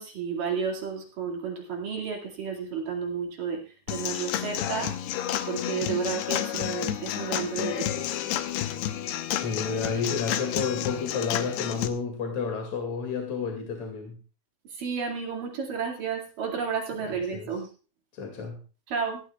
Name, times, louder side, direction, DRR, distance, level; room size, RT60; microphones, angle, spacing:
voice 1, 0.0-3.6 3.9-4.9 5.5-8.0 14.8-17.7 18.9-19.2, right 6 dB, 55° right, 0 dB, 3.6 m, -32 dB
Human voice / Acoustic guitar / Drum, 3.9-11.9, left 11 dB, 80° left, 2.8 m, -30 dB
voice 2, 9.4-14.2 17.3-17.5 18.1-18.6, left 5 dB, 50° left, 2 dB, 3.1 m, -30 dB
19.0 x 15.5 x 2.4 m, 0.35 s
omnidirectional pair, 4.9 m